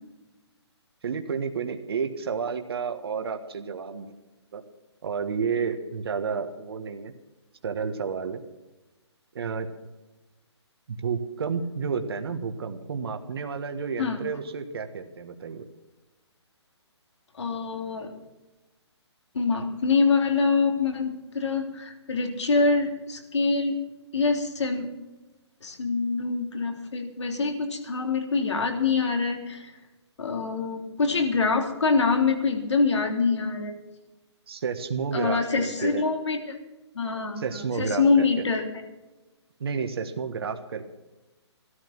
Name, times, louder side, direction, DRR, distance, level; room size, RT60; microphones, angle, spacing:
voice 1, 1.0-4.1 4.5-4.6 5.0-7.1 7.6-8.4 9.3-9.7 10.9-15.6 34.5-36.0 37.4-38.3 39.6-40.8, right 6 dB, 55° right, 6 dB, 1.5 m, -31 dB
voice 2, 17.4-18.1 19.3-23.8 24.1-24.9 25.6-29.7 30.2-33.7 35.1-36.6 36.9-38.6, left 4 dB, 75° left, 4 dB, 3.4 m, -25 dB
14.5 x 13.0 x 6.0 m, 1.1 s
hypercardioid pair, 165°, 15 cm